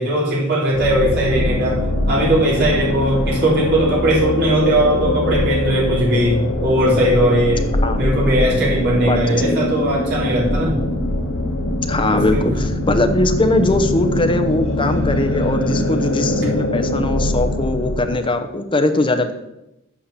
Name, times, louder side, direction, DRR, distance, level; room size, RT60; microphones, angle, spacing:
voice 1, 0.0-10.8 12.1-12.6 16.3-16.5, right 1 dB, 55° right, -6 dB, 4.3 m, -19 dB
sound 1, 0.7-18.2, left 1 dB, 70° left, 1.9 m, -22 dB
voice 2, 9.0-9.6 11.8-19.3, left 2 dB, 25° left, 8 dB, 0.8 m, -20 dB
8.5 x 5.8 x 6.8 m, 0.90 s
head